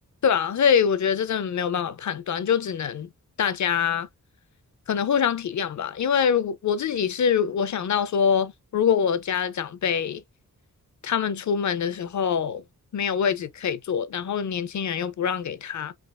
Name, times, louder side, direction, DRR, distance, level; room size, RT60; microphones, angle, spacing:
voice 1, 0.2-3.1 3.4-4.1 4.9-10.2 11.0-12.6 12.9-15.9, left 7 dB, 55° left, 0.5 m, -24 dB
3.3 x 2.4 x 2.2 m
cardioid pair, 70°, 35 cm